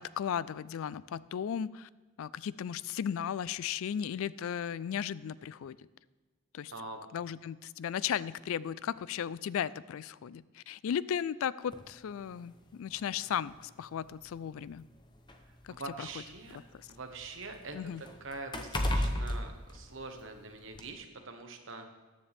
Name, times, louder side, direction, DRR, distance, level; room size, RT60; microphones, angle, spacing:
voice 1, 0.0-1.9 2.2-5.8 6.5-6.7 7.1-14.9 15.6-16.1 17.7-18.0, left 8 dB, 70° left, 19 dB, 0.3 m, -35 dB
voice 2, 6.7-7.0 15.4-16.6 16.9-21.9, right 3 dB, 60° right, 5 dB, 1.2 m, -44 dB
sound 1, 11.7-11.9 12.9-13.0 13.5-13.6 14.6-16.5 16.9-20.4 20.7-20.9, left 1 dB, 20° left, 0.8 m, -35 dB
14.0 x 9.7 x 3.5 m, 1.3 s
head